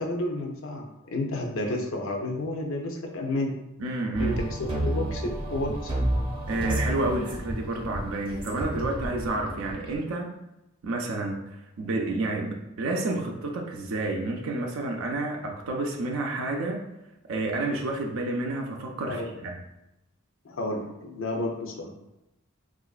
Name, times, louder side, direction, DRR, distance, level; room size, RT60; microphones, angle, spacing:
voice 1, 0.0-3.6 4.2-5.9 19.1-19.3 20.4-21.9, left 1 dB, 70° left, 1 dB, 0.6 m, -31 dB
voice 2, 3.8-4.5 6.5-10.3 10.8-11.4 11.8-16.8 17.3-19.6, right 2 dB, 80° right, 1 dB, 0.5 m, -30 dB
sound 1, 4.1-10.0, right 1 dB, 25° right, 0.6 m, -30 dB
3.8 x 2.4 x 2.3 m, 0.92 s
head